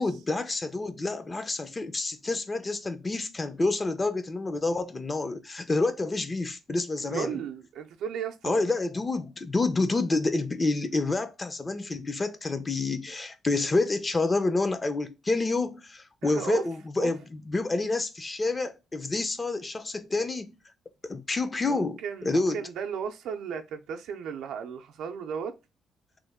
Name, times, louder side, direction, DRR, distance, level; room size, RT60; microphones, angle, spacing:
voice 1, 0.0-7.4 8.4-17.2 17.5-20.5 21.1-22.7, left 3 dB, 25° left, 0.5 m, -28 dB
voice 2, 7.1-8.6 16.2-16.6 17.0-17.1 21.7-25.5, right 7 dB, 80° right, 0.5 m, -35 dB
3.1 x 2.2 x 3.5 m
cardioid pair, 90°, 0 cm